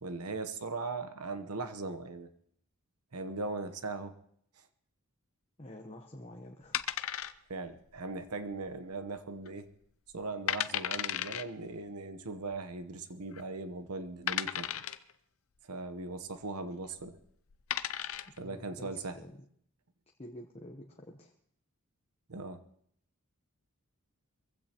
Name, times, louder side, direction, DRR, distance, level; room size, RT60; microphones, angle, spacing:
voice 1, 0.0-2.3 3.1-4.1 7.5-9.7 10.1-14.8 15.6-17.2 18.4-19.2 22.3-22.6, right 3 dB, 85° right, 9 dB, 1.0 m, -39 dB
voice 2, 5.6-6.8 7.1-7.3 18.4-19.4 20.2-21.3, left 1 dB, 25° left, 2 dB, 1.0 m, -49 dB
sound 1, 6.7-7.7 8.0-8.1 8.7-9.1 9.5-9.6 10.1-10.2 10.5-11.4 12.5-12.6 13.3-13.4 14.3-15.1 16.9-17.1 17.5-18.4, left 10 dB, 65° left, 0.6 m, -34 dB
23.0 x 15.5 x 3.0 m, 0.68 s
head